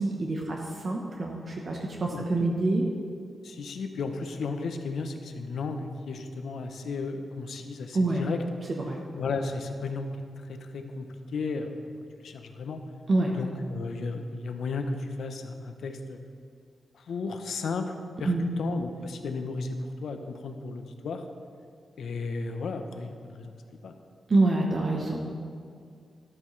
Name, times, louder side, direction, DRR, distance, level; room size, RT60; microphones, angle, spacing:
voice 1, 0.0-2.8 7.9-8.2 8.7-9.0 13.1-13.3 18.2-18.5 24.3-25.2, right 2 dB, 45° right, -1 dB, 0.9 m, -26 dB
voice 2, 2.1-2.5 3.4-8.4 9.2-10.1 10.4-11.7 12.2-12.8 13.3-16.2 16.9-18.3 18.6-21.2 22.0-23.9, left 4 dB, 85° left, 6 dB, 0.7 m, -34 dB
12.5 x 8.8 x 3.2 m, 2.2 s
wide cardioid pair, 135°, 0 cm